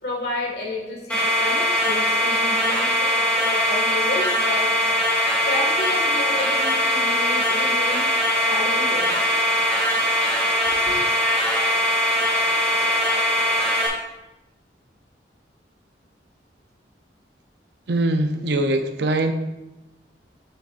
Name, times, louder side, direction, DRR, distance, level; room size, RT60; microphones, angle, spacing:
voice 1, 0.0-5.0 5.5-8.1 8.4-9.2 10.7-11.0, left 2 dB, 60° left, 0 dB, 1.8 m, -31 dB
sound 1, 1.1-13.9, equal, 5° left, 2.0 m, -21 dB
voice 2, 17.9-19.3, right 1 dB, 70° right, 7 dB, 0.6 m, -22 dB
8.7 x 7.4 x 2.5 m, 1.0 s
head